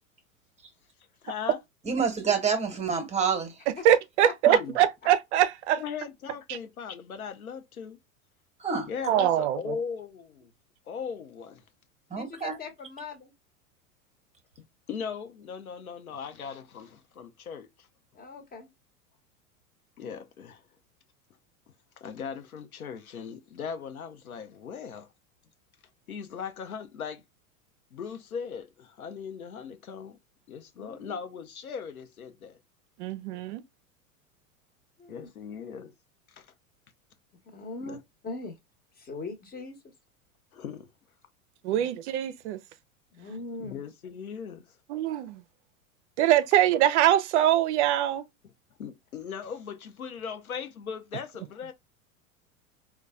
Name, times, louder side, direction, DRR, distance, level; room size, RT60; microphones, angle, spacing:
voice 1, 1.2-1.6 4.5-4.8 5.8-8.0 8.9-10.5 10.9-11.6 14.9-17.7 20.0-20.6 22.0-25.1 26.1-27.2 27.9-30.2 30.5-32.6 35.1-35.9 36.4-36.5 37.9-38.0 40.5-40.9 43.6-44.7 48.8-51.7, left 6 dB, 85° left, 0.7 m, -38 dB
voice 2, 1.8-3.6 8.6-8.9 12.1-12.5, right 6 dB, 15° right, 1.0 m, -27 dB
voice 3, 3.7-5.8 6.5-6.6 9.0-9.7 33.0-33.6 41.6-42.6 44.9-45.4 46.2-48.2, right 11 dB, 55° right, 0.5 m, -23 dB
voice 4, 4.2-4.6 12.1-13.3 18.1-18.7 30.7-31.2 35.0-35.3 37.4-38.0 38.2-38.6 38.9-39.8 41.6-41.9 43.1-43.8, left 3 dB, 20° left, 0.9 m, -40 dB
4.0 x 2.2 x 2.2 m
hypercardioid pair, 90°, 42 cm